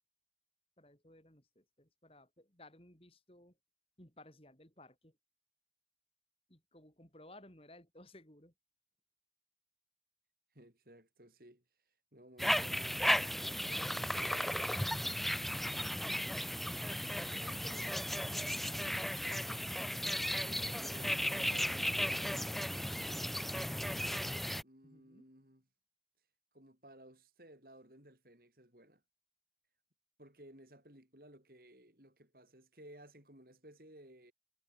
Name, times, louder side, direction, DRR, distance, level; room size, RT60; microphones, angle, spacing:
voice 1, 0.8-3.6 4.0-5.2 6.5-8.5 15.9-16.9 17.3-19.2 24.8-25.2, left 1 dB, 35° left, 5.4 m, -58 dB
voice 2, 10.5-15.2 20.4-25.7 26.5-29.0 30.2-34.3, right 1 dB, 55° right, 6.6 m, -58 dB
sound 1, 12.4-24.6, equal, ahead, 0.5 m, -35 dB
head